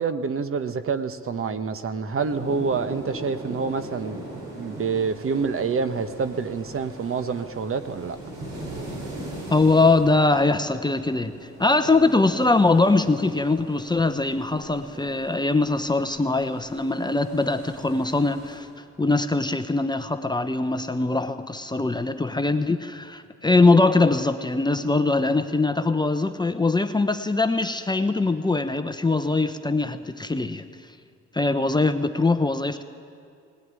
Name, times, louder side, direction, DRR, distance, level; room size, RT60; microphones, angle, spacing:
voice 1, 0.0-4.2 4.5-8.2, right 5 dB, 45° right, 10 dB, 1.2 m, -27 dB
sound 1, 2.2-18.6, right 1 dB, 90° right, 6.8 m, -40 dB
voice 2, 9.5-30.6 31.3-32.8, left 3 dB, 15° left, 9 dB, 0.9 m, -22 dB
20.0 x 17.5 x 9.7 m, 2.3 s
cardioid pair, 90°, 30 cm